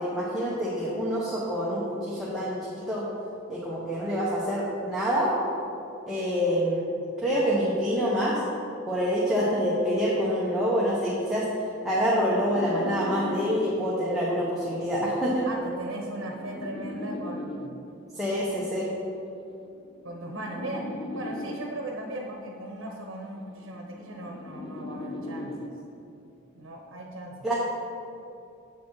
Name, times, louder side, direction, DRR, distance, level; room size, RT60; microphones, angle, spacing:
voice 1, 0.0-3.0 3.5-5.3 6.1-6.8 7.2-8.4 8.9-11.5 11.8-15.5 18.1-18.9 27.4-27.5, equal, ahead, -8 dB, 1.0 m, -26 dB
sound 1, 11.8-14.1 15.1-18.1 19.1-22.1 23.1-26.1, left 1 dB, 25° left, 0.4 m, -39 dB
voice 2, 15.5-17.8 20.0-25.7 26.5-27.3, right 1 dB, 70° right, 0 dB, 0.9 m, -38 dB
7.3 x 7.1 x 4.7 m, 2.7 s
head